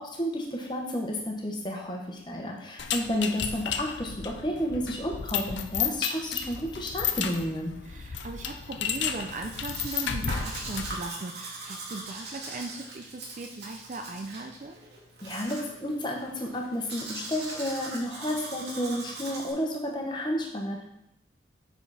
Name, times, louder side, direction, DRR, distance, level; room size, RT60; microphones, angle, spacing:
voice 1, 0.0-7.7 15.2-20.8, equal, 25° left, 1 dB, 1.1 m, -31 dB
sound 1, 2.8-11.0, left 8 dB, 80° left, 0.6 m, -33 dB
voice 2, 7.8-14.8, right 2 dB, 40° right, 4 dB, 0.4 m, -38 dB
Domestic sounds home sounds, 9.3-19.5, right 2 dB, 70° right, 2.0 m, -41 dB
6.9 x 5.8 x 4.1 m, 0.83 s
head